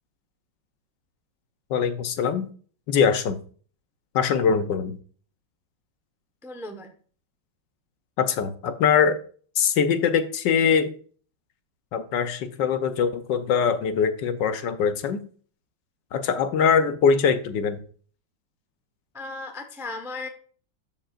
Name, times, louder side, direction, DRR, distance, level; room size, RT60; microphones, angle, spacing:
voice 1, 1.7-2.5 2.9-3.4 4.1-5.0 8.2-9.2 9.6-10.9 11.9-15.2 16.1-17.8, left 6 dB, 70° left, 10 dB, 1.3 m, -22 dB
voice 2, 6.4-6.9 19.1-20.3, left 2 dB, 5° right, 6 dB, 0.5 m, -36 dB
13.0 x 5.3 x 2.4 m, 0.43 s
omnidirectional pair, 2.2 m